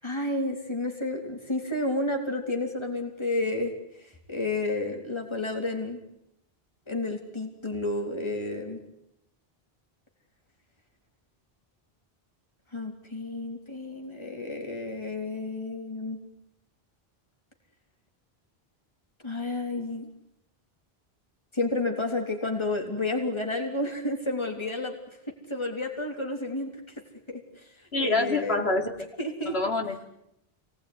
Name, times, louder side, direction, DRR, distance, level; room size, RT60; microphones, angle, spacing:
voice 1, 0.0-6.0 6.9-8.8 12.7-16.2 19.2-20.1 21.5-25.0 25.5-26.7 27.3-27.7 28.0-28.7 29.2-29.6, left 2 dB, 25° left, 2 dB, 3.7 m, -31 dB
voice 2, 27.9-28.9 29.4-30.1, left 3 dB, 80° left, 3 dB, 3.3 m, -26 dB
29.0 x 19.0 x 9.7 m, 0.82 s
omnidirectional pair, 1.0 m